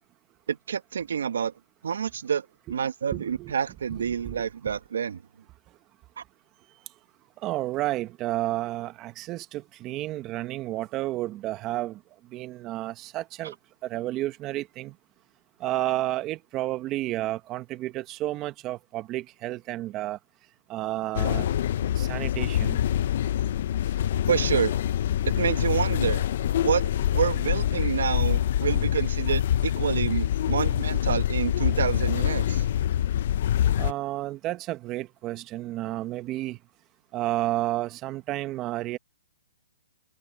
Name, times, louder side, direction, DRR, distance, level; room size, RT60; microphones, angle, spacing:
voice 1, 0.5-1.5 1.8-5.2 6.2-6.3 24.3-24.7 25.3-26.2 26.6-32.6, right 7 dB, 75° right, 1.9 m, -28 dB
voice 2, 3.1-3.5 3.9-4.4 7.4-12.0 12.3-13.5 13.9-14.9 15.6-20.2 20.7-21.5 21.9-22.8 33.8-36.6 37.1-39.0, right 16 dB, 25° right, 1.4 m, -31 dB
sound 1, 21.1-33.9, left 11 dB, 55° left, 0.7 m, -25 dB
hypercardioid pair, 150°, 0 cm